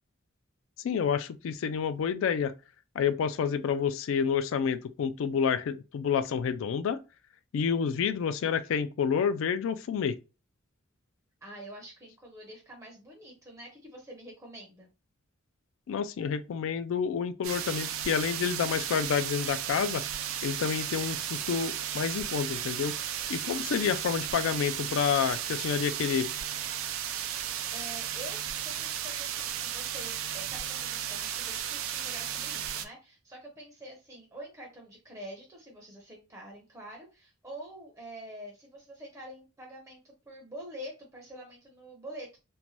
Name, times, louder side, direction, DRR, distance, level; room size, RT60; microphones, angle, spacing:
voice 1, 0.8-2.5 3.0-7.0 7.5-10.2 15.9-20.0 20.4-22.9 23.3-26.3, left 7 dB, 70° left, 0.3 m, -29 dB
voice 2, 11.4-14.9 27.7-28.4 28.6-42.4, right 1 dB, 15° right, 0.6 m, -46 dB
sound 1, 17.4-32.8, right 9 dB, 85° right, 0.4 m, -34 dB
2.6 x 2.1 x 3.0 m
head